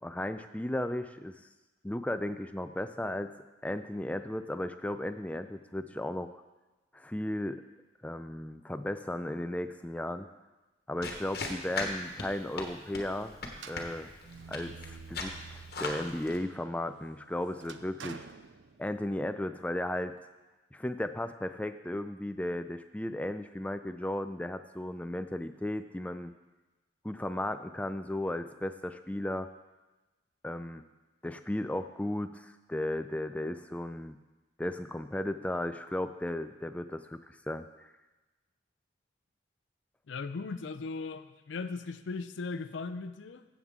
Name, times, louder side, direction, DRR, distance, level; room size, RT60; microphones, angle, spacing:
voice 1, 0.0-1.4 1.8-3.3 3.6-6.3 6.9-7.6 8.0-10.3 10.9-13.3 13.7-14.1 14.5-18.3 18.8-20.1 20.7-26.3 27.0-29.5 30.4-30.8 31.2-34.2 34.6-37.2 37.5-37.7, left 1 dB, 10° left, 9 dB, 0.3 m, -35 dB
sound 1, 11.0-16.4, left 3 dB, 55° left, 1.2 m, -39 dB
sound 2, 13.5-16.0 16.4-19.2, right 5 dB, 75° right, 0.5 m, -49 dB
voice 2, 40.1-43.4, left 4 dB, 75° left, 11 dB, 0.4 m, -38 dB
15.0 x 7.2 x 3.7 m, 1.1 s
head